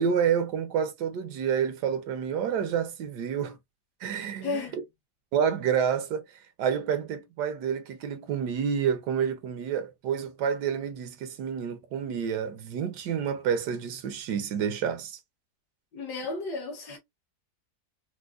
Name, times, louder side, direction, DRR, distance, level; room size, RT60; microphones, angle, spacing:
voice 1, 0.0-3.6 4.0-4.6 5.3-6.2 6.6-15.2, right 7 dB, 80° right, 1.3 m, -29 dB
voice 2, 4.4-4.8 15.9-17.0, left 3 dB, 75° left, 1.8 m, -33 dB
4.8 x 2.1 x 2.4 m
omnidirectional pair, 1.8 m